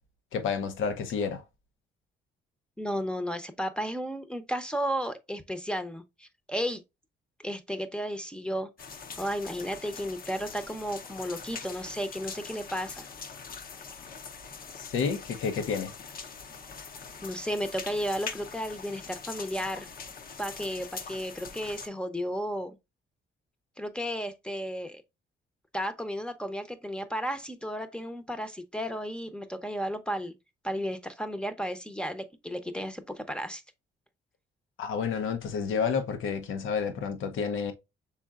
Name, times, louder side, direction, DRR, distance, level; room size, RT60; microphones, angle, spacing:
voice 1, 0.3-1.4 14.8-15.9 34.8-37.7, left 6 dB, 80° left, 0.8 m, -30 dB
voice 2, 2.8-6.8 7.4-8.7 9.2-13.1 17.2-19.9 20.4-22.8 23.8-25.0 25.7-30.3 30.6-33.6, equal, 5° left, 0.7 m, -33 dB
sound 1, 8.8-21.9, left 5 dB, 45° left, 0.7 m, -43 dB
5.6 x 3.7 x 2.4 m
cardioid pair, 90°, 20 cm